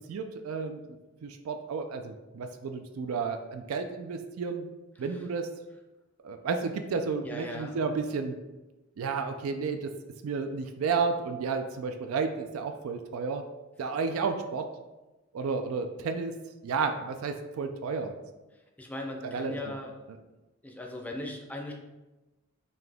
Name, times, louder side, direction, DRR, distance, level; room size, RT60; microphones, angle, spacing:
voice 1, 0.1-0.8 1.2-4.7 5.0-5.5 6.2-8.3 9.0-9.9 10.2-13.4 13.8-14.7 15.3-16.4 16.6-18.1 19.2-19.5, right 5 dB, 85° right, 7 dB, 0.4 m, -32 dB
voice 2, 7.2-7.7 18.8-19.9 20.6-21.7, left 1 dB, 5° left, 1 dB, 0.5 m, -38 dB
4.0 x 2.8 x 3.4 m, 1.1 s
head